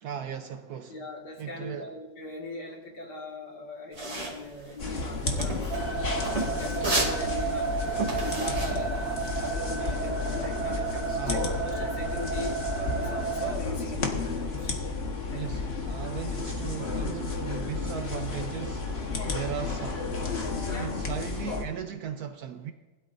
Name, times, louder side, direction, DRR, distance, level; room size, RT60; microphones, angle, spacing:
voice 1, 0.0-1.0 1.4-1.9 11.1-11.5 15.3-18.9 19.3-20.1 20.8-22.7, right 8 dB, 65° right, 7 dB, 1.1 m, -37 dB
voice 2, 0.9-5.8 6.3-14.7 15.3-15.6 20.7-21.0, left 2 dB, 60° left, -1 dB, 2.6 m, -40 dB
sound 1, 3.9-9.5, right 2 dB, 35° right, 3.0 m, -33 dB
sound 2, 4.8-21.6, left 3 dB, 35° left, 1.4 m, -32 dB
sound 3, 5.7-13.5, right 6 dB, 10° right, 4.0 m, -33 dB
20.5 x 12.0 x 2.6 m, 1.2 s
omnidirectional pair, 2.0 m